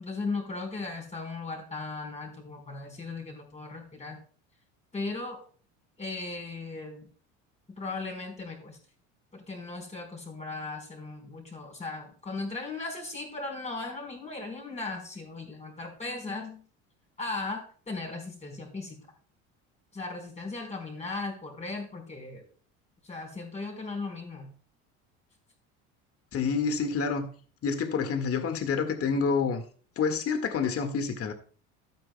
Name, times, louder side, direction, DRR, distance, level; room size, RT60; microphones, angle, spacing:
voice 1, 0.0-4.2 4.9-5.4 6.0-7.1 7.7-8.8 9.3-16.6 17.2-19.0 19.9-22.5 23.0-24.5, left 3 dB, 20° left, 4.4 m, -37 dB
voice 2, 26.3-27.3 27.6-29.6 30.0-31.3, left 5 dB, 45° left, 1.7 m, -28 dB
12.5 x 9.3 x 2.2 m
supercardioid pair, 85°, 34 cm